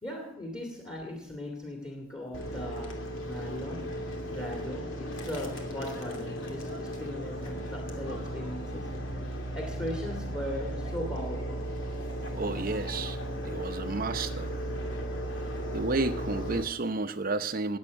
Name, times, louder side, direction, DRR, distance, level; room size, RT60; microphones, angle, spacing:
voice 1, 0.0-8.9 9.2-11.7, left 1 dB, 20° left, 0 dB, 2.2 m, -39 dB
sound 1, 2.3-16.6, equal, 80° left, 2.7 m, -36 dB
voice 2, 12.3-13.2 13.4-14.5 15.7-17.8, right 3 dB, 45° right, 9 dB, 0.8 m, -31 dB
19.0 x 8.1 x 6.3 m, 0.66 s
head